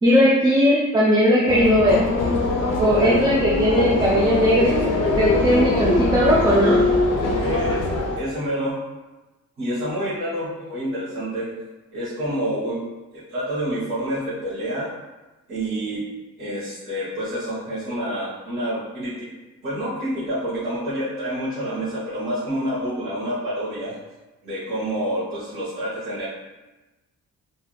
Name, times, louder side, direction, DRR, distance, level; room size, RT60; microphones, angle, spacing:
voice 1, 0.0-2.0 2.8-4.9 5.2-6.8, equal, 15° right, -6 dB, 0.3 m, -18 dB
sound 1, 1.5-8.2, left 2 dB, 55° left, 0.5 m, -22 dB
voice 2, 7.4-8.8 9.6-11.5 11.9-12.8 13.1-14.9 15.5-16.0 16.4-19.3 19.6-24.0 24.4-26.3, equal, 45° right, -12 dB, 1.4 m, -28 dB
3.4 x 2.6 x 2.2 m, 1.1 s
wide cardioid pair, 140°, 32 cm